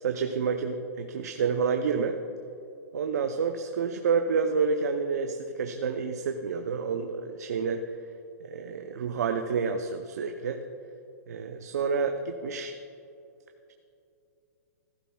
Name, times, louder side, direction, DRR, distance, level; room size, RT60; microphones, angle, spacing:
voice 1, 0.0-2.2 2.9-7.8 8.4-10.6 11.3-12.7, right 5 dB, 70° right, 5 dB, 0.7 m, -29 dB
15.0 x 12.5 x 2.3 m, 2.7 s
hypercardioid pair, 165°, 9 cm